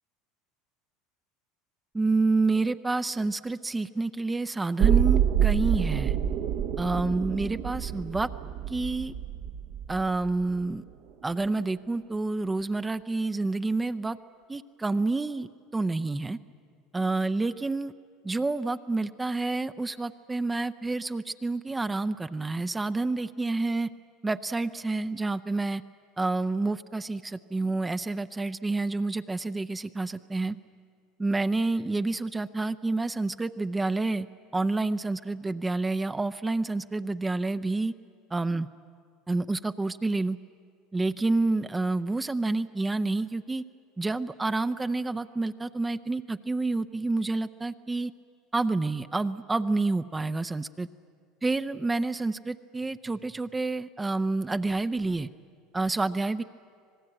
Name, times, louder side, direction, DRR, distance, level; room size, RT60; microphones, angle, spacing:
voice 1, 1.9-6.2 6.8-8.3 8.7-9.1 9.9-10.8 11.2-14.2 14.5-16.4 16.9-17.9 18.2-23.9 24.2-25.8 26.2-30.6 31.2-34.3 34.5-37.9 38.3-38.7 39.3-40.4 40.9-43.6 44.0-48.1 48.5-50.9 51.4-55.3 55.7-56.4, right 3 dB, 15° right, 10 dB, 0.6 m, -28 dB
sound 1, 4.8-10.8 11.1-11.2, right 9 dB, 60° right, 1.1 m, -27 dB
26.0 x 18.5 x 9.0 m, 2.2 s
hypercardioid pair, 85°, 0 cm